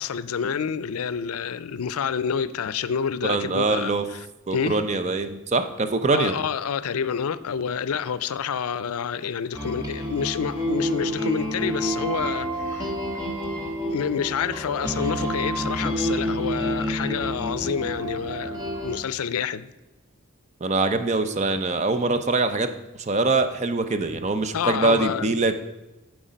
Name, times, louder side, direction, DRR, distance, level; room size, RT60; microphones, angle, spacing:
voice 1, 0.0-4.8 6.1-12.9 13.9-19.7 24.5-25.4, left 7 dB, 90° left, 0.4 m, -28 dB
voice 2, 3.2-4.0 4.5-6.4 20.6-22.7 23.0-25.6, right 3 dB, 30° right, 0.6 m, -23 dB
sound 1, 9.5-19.0, equal, 15° right, 1.3 m, -29 dB
11.5 x 4.8 x 5.1 m
head